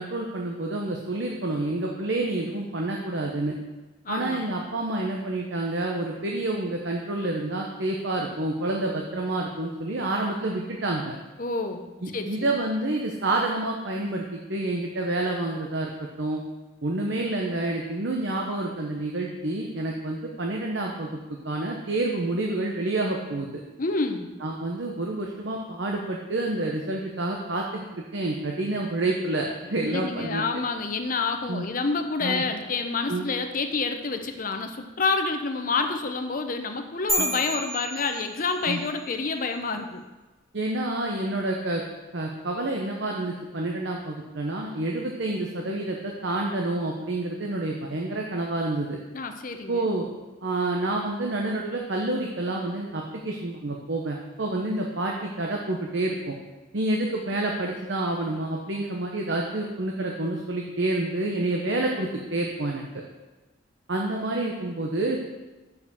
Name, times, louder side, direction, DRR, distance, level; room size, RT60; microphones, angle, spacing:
voice 1, 0.0-3.5 4.1-11.1 12.0-16.4 16.8-21.2 21.4-23.6 24.4-30.4 31.5-31.7 32.2-32.4 33.1-33.2 37.2-37.3 38.6-38.8 40.5-41.8 42.1-49.0 49.7-50.1 50.4-56.4 56.7-62.8 63.9-65.2, right 2 dB, 65° right, 0 dB, 0.9 m, -28 dB
voice 2, 4.0-4.4 11.4-11.9 12.1-12.5 23.8-24.3 29.9-40.0 49.1-49.9, left 4 dB, 45° left, 6 dB, 0.7 m, -28 dB
sound 1, 37.1-38.8, right 1 dB, ahead, 1.9 m, -30 dB
6.7 x 5.2 x 6.9 m, 1.2 s
head